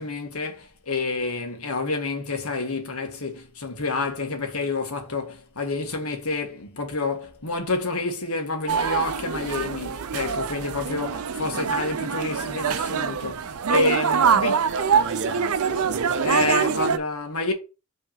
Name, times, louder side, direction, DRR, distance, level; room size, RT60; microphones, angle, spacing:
voice 1, 0.0-14.6 16.2-17.5, left 3 dB, 80° left, 1.7 m, -28 dB
sound 1, 8.7-17.0, right 6 dB, 80° right, 0.6 m, -25 dB
voice 2, 13.7-16.4, right 4 dB, 60° right, 1.0 m, -31 dB
5.5 x 3.5 x 5.7 m
head